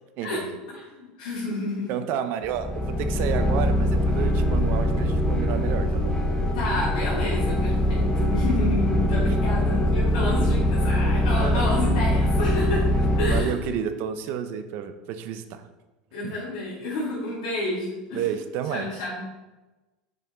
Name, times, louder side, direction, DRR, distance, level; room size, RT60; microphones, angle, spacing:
voice 1, 0.2-0.6 1.9-6.2 9.3-9.4 11.4-11.6 13.3-15.6 16.2-16.3 18.1-18.9, right 9 dB, 60° right, 9 dB, 0.6 m, -31 dB
voice 2, 0.7-1.9 6.5-12.8 13.2-13.8 16.1-18.3 18.7-19.2, left 2 dB, 75° left, -8 dB, 2.1 m, -30 dB
sound 1, 2.4-13.4, left 1 dB, 20° left, 1.1 m, -23 dB
5.5 x 5.4 x 3.7 m, 1.1 s
hypercardioid pair, 95°, 4 cm